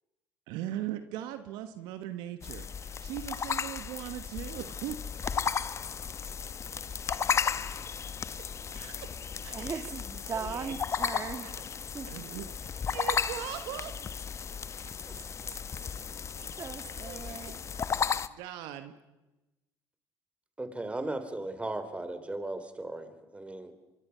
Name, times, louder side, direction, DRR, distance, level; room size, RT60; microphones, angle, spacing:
voice 1, 0.5-5.3 7.3-7.4 7.7-7.8 8.2-8.3 8.7-9.1 9.4-9.9 10.3-10.7 11.4-11.5 12.0-12.5 12.9-13.9 17.0-17.5 18.3-18.9, right 12 dB, 75° right, 9 dB, 1.3 m, -40 dB
sound 1, 2.4-18.3, left 6 dB, 40° left, 0.8 m, -34 dB
voice 2, 9.5-11.5 11.9-12.1 16.6-17.6, right 5 dB, 40° right, 9 dB, 2.1 m, -38 dB
voice 3, 20.6-23.7, right 2 dB, 15° right, 10 dB, 3.1 m, -37 dB
24.5 x 23.0 x 5.7 m, 1.0 s
hypercardioid pair, 70°, 8 cm